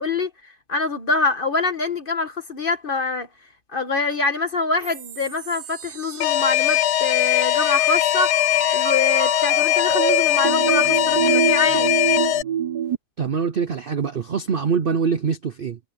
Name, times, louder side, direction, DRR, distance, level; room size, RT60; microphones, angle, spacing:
voice 1, 0.0-3.3 3.7-8.4 8.7-11.9, left 3 dB, 35° left, 1.5 m, -25 dB
sound 1, 4.8-13.0, right 8 dB, 80° right, 1.7 m, -27 dB
Alarm, 6.2-12.4, left 14 dB, 90° left, 1.2 m, -20 dB
voice 2, 13.2-15.8, right 6 dB, 50° right, 0.6 m, -24 dB
omnidirectional pair, 1.7 m